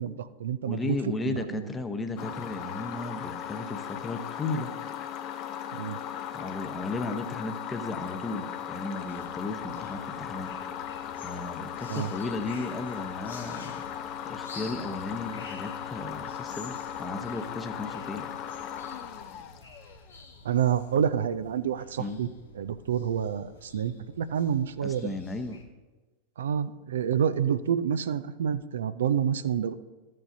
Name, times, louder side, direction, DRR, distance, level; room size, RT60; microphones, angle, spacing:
voice 1, 0.0-1.0 1.2-1.7 5.7-6.0 11.9-12.1 20.4-22.3 22.6-25.1 26.4-29.7, right 8 dB, 75° right, 14 dB, 0.4 m, -28 dB
voice 2, 0.6-4.7 6.3-10.5 11.2-13.8 14.2-18.3 22.0-22.3 24.8-25.6, left 3 dB, 15° left, 6 dB, 0.9 m, -35 dB
sound 1, 2.2-20.1, left 9 dB, 45° left, 0.6 m, -38 dB
sound 2, 9.1-25.6, left 3 dB, 85° left, 1.2 m, -50 dB
13.5 x 7.5 x 2.7 m, 1.2 s
figure-of-eight pair, 90°, 0 cm